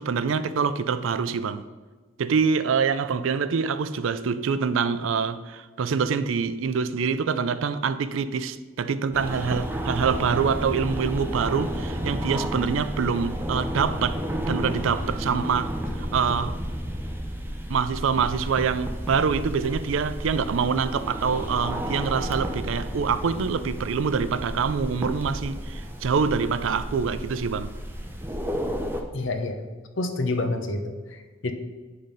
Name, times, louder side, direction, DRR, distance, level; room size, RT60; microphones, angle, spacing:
voice 1, 0.0-1.6 2.2-14.2 14.5-16.6 17.7-27.7, right 6 dB, 75° right, 0.4 m, -25 dB
sound 1, 9.1-29.0, equal, 10° right, 0.6 m, -32 dB
voice 2, 29.1-29.6 30.0-31.5, left 2 dB, 65° left, 0.8 m, -28 dB
8.9 x 3.9 x 5.3 m
head